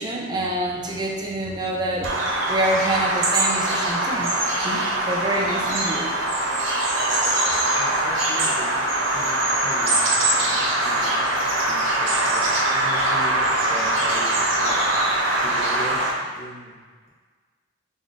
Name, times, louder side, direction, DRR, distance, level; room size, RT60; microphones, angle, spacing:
voice 1, 0.0-2.2 2.5-6.1, right 1 dB, 20° right, -2 dB, 0.5 m, -27 dB
Bird vocalization bird call bird song, 2.0-16.1, right 1 dB, 90° right, 0.6 m, -22 dB
voice 2, 7.7-8.8 9.1-11.1 11.7-16.7, right 1 dB, 55° right, -6 dB, 1.2 m, -39 dB
3.5 x 2.1 x 3.8 m, 1.5 s
head